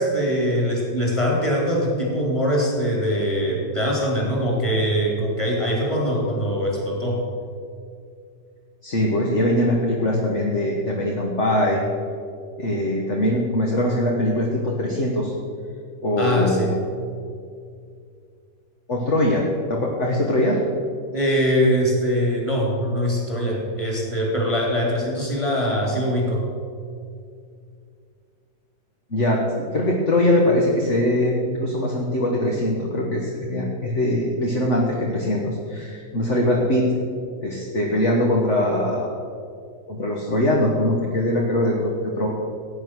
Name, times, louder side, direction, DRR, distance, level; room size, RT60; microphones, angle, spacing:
voice 1, 0.0-7.2 16.2-16.7 21.1-26.5, equal, 15° left, -2 dB, 3.6 m, -22 dB
voice 2, 8.8-11.8 12.6-15.3 16.0-16.8 18.9-20.6 29.1-36.9 37.4-39.1 39.9-42.3, left 1 dB, 45° left, -2 dB, 1.8 m, -22 dB
16.5 x 9.2 x 6.3 m, 2.3 s
omnidirectional pair, 1.9 m